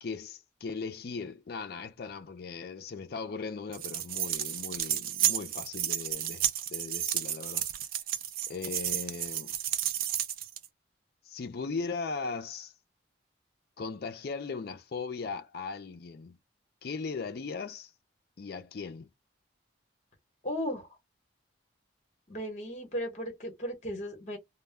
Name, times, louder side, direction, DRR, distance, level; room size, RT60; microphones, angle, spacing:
voice 1, 0.0-7.7 8.5-9.5 11.2-12.7 13.8-16.4 16.8-17.9 18.4-19.1, left 4 dB, 50° left, 0.4 m, -38 dB
sound 1, 3.7-10.7, right 11 dB, 50° right, 0.3 m, -32 dB
voice 2, 20.4-20.9 22.3-24.4, equal, 35° left, 0.9 m, -35 dB
2.1 x 2.1 x 3.3 m
head